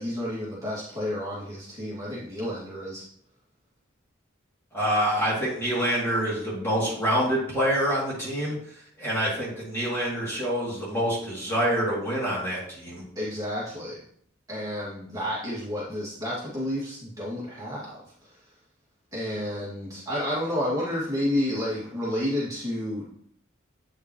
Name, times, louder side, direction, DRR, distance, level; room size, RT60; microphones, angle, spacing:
voice 1, 0.0-3.0 13.2-14.0 14.5-18.4 19.1-23.1, left 1 dB, 20° right, -8 dB, 2.4 m, -30 dB
voice 2, 4.7-8.5 9.0-13.0, equal, 15° left, -7 dB, 2.9 m, -26 dB
8.9 x 5.6 x 3.2 m, 0.64 s
head